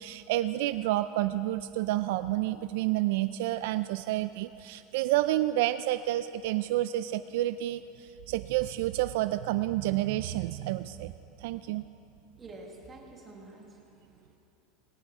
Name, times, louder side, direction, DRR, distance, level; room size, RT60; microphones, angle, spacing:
voice 1, 0.0-11.1 11.4-11.8, right 15 dB, 60° right, 12 dB, 0.3 m, -29 dB
voice 2, 12.4-14.4, right 2 dB, 15° right, 0 dB, 1.6 m, -49 dB
19.0 x 18.5 x 3.6 m, 2.9 s
supercardioid pair, 175°, 0 cm